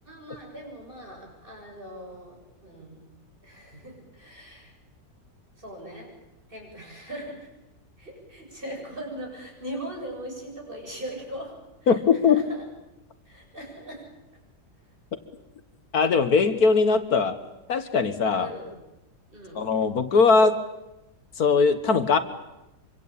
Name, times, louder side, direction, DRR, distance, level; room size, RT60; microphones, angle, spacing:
voice 1, 0.0-3.1 3.4-4.7 5.6-6.1 6.5-7.5 8.0-11.6 11.8-12.6 13.2-14.1 18.4-18.7 19.3-19.7, right 1 dB, 30° right, 0 dB, 7.9 m, -40 dB
voice 2, 11.9-12.4 15.9-17.4 17.7-18.5 19.6-20.6 21.4-22.2, left 5 dB, 65° left, 10 dB, 1.8 m, -20 dB
25.5 x 24.5 x 8.7 m, 0.96 s
omnidirectional pair, 1.7 m